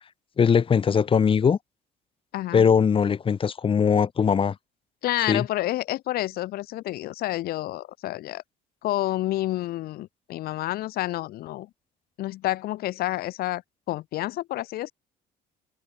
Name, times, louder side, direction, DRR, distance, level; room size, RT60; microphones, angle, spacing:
voice 1, 0.4-1.6 2.5-4.5 5.3-5.4, left 6 dB, 30° left, 1.0 m, -20 dB
voice 2, 2.3-2.7 5.0-8.4 8.8-11.7 12.2-13.6 13.9-14.9, left 15 dB, 65° left, 0.5 m, -29 dB
cardioid pair, 110°, 17 cm